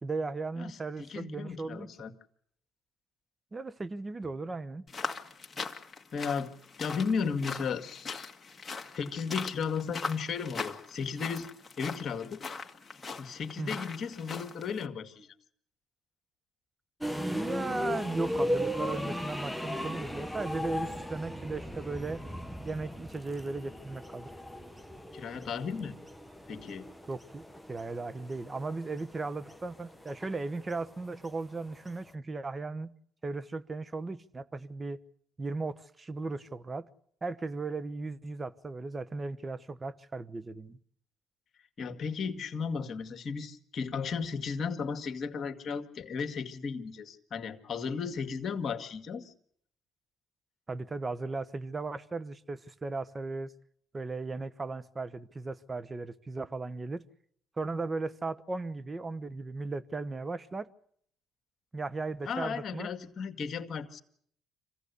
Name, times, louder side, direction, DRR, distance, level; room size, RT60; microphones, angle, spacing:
voice 1, 0.0-2.2 3.5-4.9 13.6-13.8 17.2-22.2 22.6-24.3 27.1-27.4 27.7-32.9 33.2-35.0 35.4-36.9 37.2-40.8 50.7-53.5 53.9-57.1 57.6-60.7 61.7-62.9, right 3 dB, 25° right, 1.1 m, -36 dB
voice 2, 0.6-2.1 6.1-6.5 6.8-8.3 8.9-11.5 11.8-12.4 13.1-15.3 25.1-26.0 26.5-26.9 41.8-49.3 62.3-64.0, left 5 dB, 50° left, 2.1 m, -35 dB
sound 1, 4.9-14.9, left 4 dB, 25° left, 2.3 m, -41 dB
sound 2, 17.0-32.1, equal, ahead, 1.3 m, -37 dB
26.0 x 16.5 x 8.3 m
supercardioid pair, 80°, 0 cm